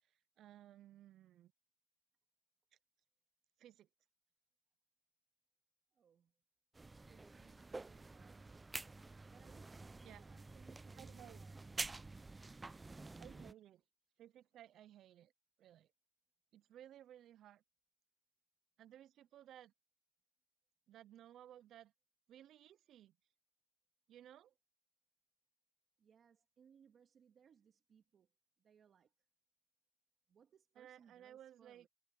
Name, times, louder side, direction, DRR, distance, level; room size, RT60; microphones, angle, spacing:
voice 1, 0.0-1.5 3.6-3.9 10.0-10.2 11.0-11.4 13.2-13.8 14.2-15.3 15.6-15.9 16.5-17.6 18.8-19.7 20.9-21.9 22.3-23.1 24.1-24.5 30.8-31.9, right 11 dB, 75° right, 0.5 m, -58 dB
voice 2, 5.9-6.3 7.1-8.7 9.3-11.6 26.0-28.3 28.6-29.1 30.3-31.9, right 7 dB, 60° right, 2.0 m, -68 dB
sound 1, 6.7-13.5, right 3 dB, 20° right, 0.5 m, -49 dB
cardioid pair, 90°, 0 cm